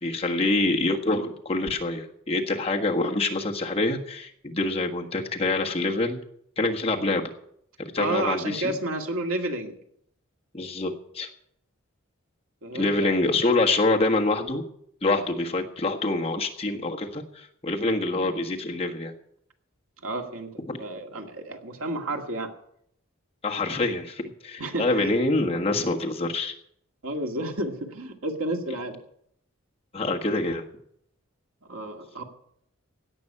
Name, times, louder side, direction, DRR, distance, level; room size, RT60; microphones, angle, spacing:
voice 1, 0.0-6.2 6.6-7.2 7.8-8.7 10.5-11.3 12.7-14.6 15.0-19.1 20.6-20.8 23.4-26.5 29.9-30.7, left 2 dB, 30° left, 1 dB, 1.5 m, -26 dB
voice 2, 8.0-9.8 12.6-13.1 20.0-20.5 20.8-22.5 24.6-25.1 27.0-29.0 31.7-32.2, right 1 dB, 80° right, 4 dB, 2.0 m, -31 dB
17.0 x 6.1 x 10.0 m, 0.71 s
head